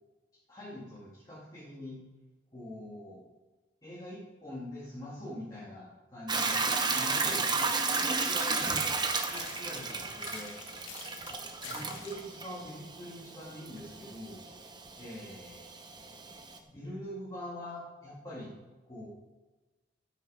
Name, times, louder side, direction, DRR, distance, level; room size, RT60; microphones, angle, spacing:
voice 1, 0.5-2.0 2.5-3.2 3.8-6.6 6.9-10.5 11.3-14.4 15.0-15.7 16.6-18.5 18.8-19.1, left 1 dB, 20° left, -8 dB, 2.5 m, -44 dB
Hiss / Toilet flush / Trickle dribble, 6.3-16.6, right 4 dB, 20° right, 0.9 m, -33 dB
sound 1, 7.8-8.9 9.3-12.3, left 6 dB, 80° left, 1.7 m, -47 dB
13.0 x 8.2 x 5.1 m, 1.2 s
head